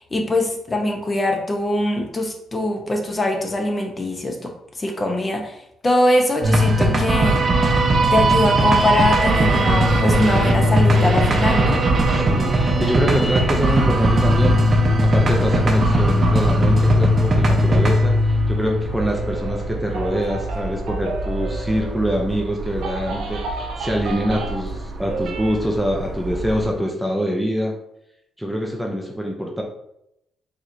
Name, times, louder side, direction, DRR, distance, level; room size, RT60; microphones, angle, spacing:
voice 1, 0.0-4.5 4.8-7.4 8.1-11.8, left 1 dB, 25° left, 3 dB, 0.8 m, -22 dB
sound 1, 6.4-23.5, right 1 dB, 40° right, 0.8 m, -19 dB
sound 2, 7.7-26.7, right 2 dB, 60° right, 1.1 m, -32 dB
voice 2, 12.1-27.8 28.4-29.6, equal, ahead, 0 dB, 0.6 m, -25 dB
sound 3, 19.0-22.2 22.7-24.8 25.0-25.6, right 3 dB, 75° right, 0.7 m, -32 dB
4.8 x 2.9 x 2.7 m, 0.78 s
cardioid pair, 90°, 0 cm